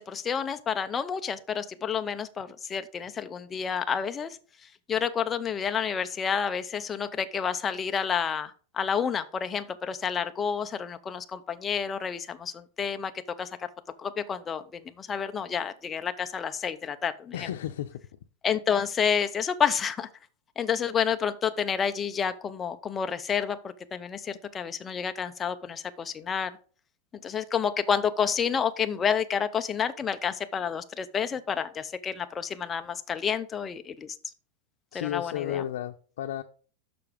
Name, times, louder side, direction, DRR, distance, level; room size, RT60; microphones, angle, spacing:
voice 1, 0.0-4.4 4.9-13.1 13.4-13.5 14.0-17.5 18.4-20.1 20.6-26.5 27.2-34.2 34.9-35.6, left 7 dB, 15° left, 0.5 m, -29 dB
voice 2, 17.3-18.0 34.9-36.4, left 11 dB, 80° left, 0.6 m, -33 dB
6.8 x 5.8 x 5.0 m
supercardioid pair, 170°, 0 cm